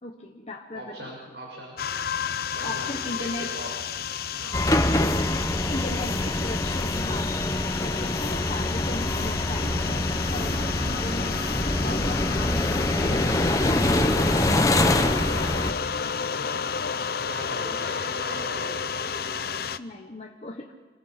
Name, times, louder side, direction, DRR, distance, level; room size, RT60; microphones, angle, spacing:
voice 1, 0.0-1.2 2.6-3.5 5.0-7.4 7.7-9.8 10.3-12.6 13.1-15.1 19.8-20.7, left 2 dB, 35° left, 1 dB, 1.3 m, -37 dB
voice 2, 0.7-1.8 2.5-3.9 4.3-4.7 10.5-10.7 17.3-18.9, right 1 dB, 85° right, -1 dB, 5.8 m, -40 dB
sound 1, 1.8-19.8, left 7 dB, 60° left, 0.7 m, -32 dB
sound 2, 4.5-15.7, left 1 dB, 20° left, 1.0 m, -25 dB
27.5 x 20.5 x 5.9 m, 1.2 s
head